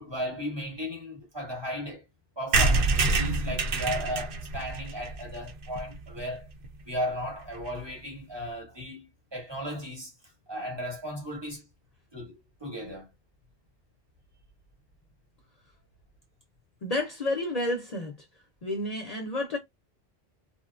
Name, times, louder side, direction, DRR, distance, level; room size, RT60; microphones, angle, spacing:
voice 1, 0.0-2.0 2.4-6.5 6.8-10.1 10.5-11.7 12.1-13.1, equal, 25° right, 0.9 m, -35 dB
sound 1, 2.5-6.2 6.6-6.7 6.9-7.0 7.2-7.3 7.5-7.8, right 3 dB, 65° right, 0.7 m, -27 dB
voice 2, 16.8-18.3 18.6-19.6, left 1 dB, 50° left, 0.5 m, -30 dB
2.8 x 2.1 x 2.4 m
omnidirectional pair, 1.0 m